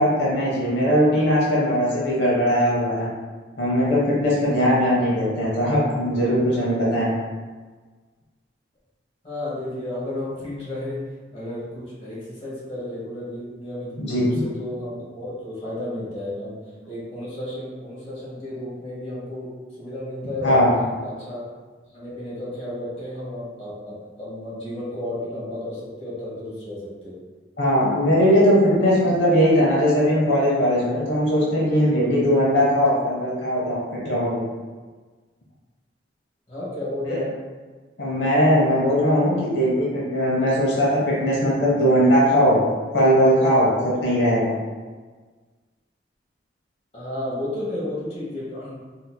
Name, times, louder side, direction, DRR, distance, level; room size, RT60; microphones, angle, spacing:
voice 1, 0.0-3.1 3.6-7.1 14.0-14.4 20.4-20.7 27.6-34.4 37.0-37.2 38.0-42.6 42.9-44.5, equal, 80° left, -5 dB, 0.8 m, -19 dB
voice 2, 9.2-11.0 11.3-16.6 16.8-19.5 19.8-20.6 21.0-21.4 21.9-27.2 36.5-37.3 46.9-48.8, left 1 dB, 30° left, -9 dB, 1.3 m, -32 dB
4.0 x 2.7 x 2.2 m, 1.4 s
head